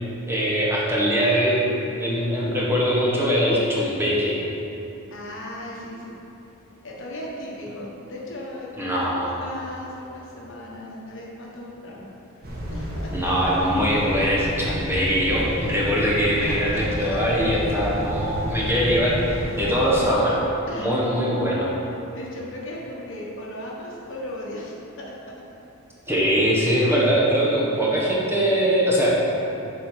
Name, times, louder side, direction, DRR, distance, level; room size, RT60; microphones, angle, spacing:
voice 1, 0.3-1.6 2.0-4.4 8.7-9.3 13.1-20.4 20.7-21.7 26.1-29.2, equal, 10° right, -6 dB, 1.3 m, -22 dB
voice 2, 5.1-6.2 6.8-12.1 12.3-12.4 12.7-13.4 16.1-17.0 20.7-20.9 22.1-25.3, left 1 dB, 60° left, -3 dB, 1.3 m, -37 dB
sound 1, 12.4-20.0, equal, 45° right, 1.3 m, -31 dB
7.3 x 4.6 x 5.6 m, 2.9 s
head